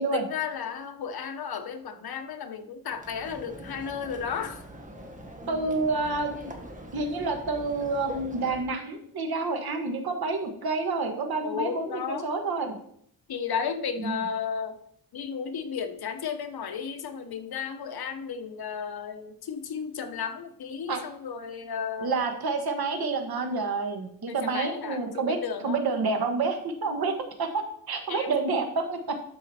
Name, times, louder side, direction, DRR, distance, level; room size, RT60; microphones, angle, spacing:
voice 1, 0.1-4.6 11.4-12.3 13.3-14.8 15.1-22.1 24.3-25.8 28.1-28.4, left 6 dB, 75° left, 8 dB, 1.0 m, -34 dB
sound 1, 2.9-8.6, right 1 dB, 20° right, 1.3 m, -43 dB
voice 2, 5.5-6.5 6.9-12.7 14.0-14.2 20.9-21.0 22.0-25.4 25.6-27.5 27.9-29.2, right 3 dB, 75° right, 5 dB, 1.5 m, -28 dB
12.5 x 5.1 x 4.3 m, 0.68 s
wide cardioid pair, 140°, 37 cm